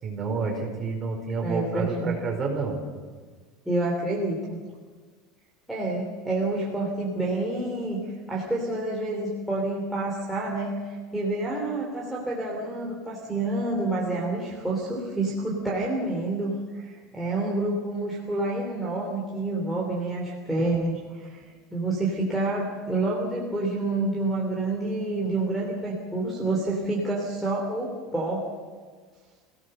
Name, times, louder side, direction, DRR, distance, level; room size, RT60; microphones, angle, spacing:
voice 1, 0.0-2.8, right 4 dB, 20° right, 0 dB, 4.9 m, -29 dB
voice 2, 1.4-2.1 3.6-4.6 5.7-8.0 8.3-21.4 21.7-28.5, right 2 dB, ahead, -5 dB, 3.0 m, -28 dB
27.5 x 17.0 x 6.6 m, 1.5 s
cardioid pair, 175°, 0 cm